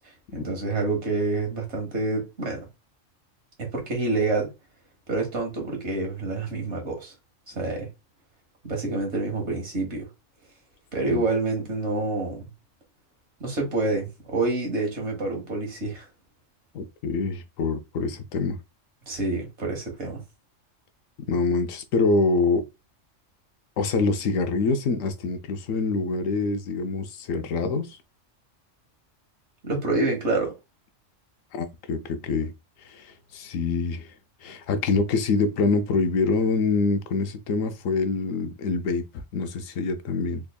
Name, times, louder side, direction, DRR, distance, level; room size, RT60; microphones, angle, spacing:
voice 1, 0.3-2.7 3.6-4.5 5.1-7.1 7.5-7.9 8.6-10.1 10.9-12.5 13.4-16.1 19.1-20.2 29.6-30.5, right 3 dB, 60° right, 1.6 m, -27 dB
voice 2, 16.7-18.6 21.3-22.6 23.8-28.0 31.5-32.5 32.8-34.1 34.4-39.0 39.3-40.4, left 4 dB, 85° left, 1.0 m, -25 dB
3.6 x 3.5 x 2.2 m
omnidirectional pair, 1.3 m